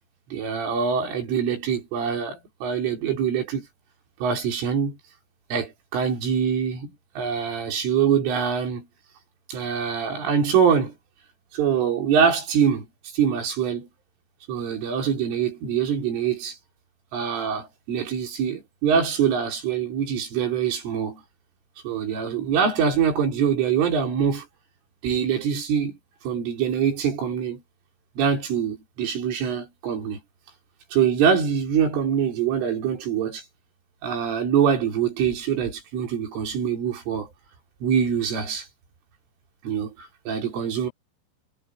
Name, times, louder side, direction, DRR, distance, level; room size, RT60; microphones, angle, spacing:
voice 1, 0.3-3.7 4.2-5.0 5.5-6.9 7.2-8.9 9.5-10.9 11.5-12.9 13.1-13.9 14.5-16.6 17.1-21.2 21.8-24.5 25.0-26.0 26.2-27.6 28.2-30.2 30.9-33.4 34.0-37.3 37.8-38.7 39.6-40.9, right 7 dB, 80° right, 7.3 m, -24 dB
omnidirectional pair, 5.7 m